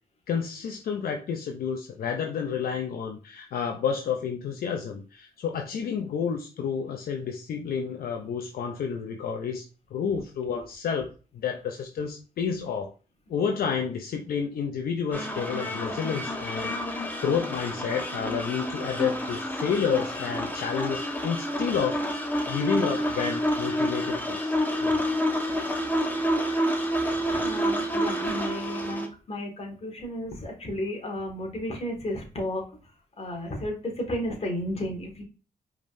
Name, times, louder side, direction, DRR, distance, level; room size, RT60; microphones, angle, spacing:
voice 1, 0.3-9.6 9.9-12.9 13.3-22.0 22.5-25.0, left 6 dB, 75° left, 3 dB, 0.6 m, -30 dB
sound 1, 15.1-29.1, equal, 10° left, 1.2 m, -29 dB
voice 2, 27.3-35.2, left 1 dB, 40° left, 1 dB, 1.8 m, -33 dB
5.0 x 3.6 x 2.6 m, 0.35 s
cardioid pair, 75°, 16 cm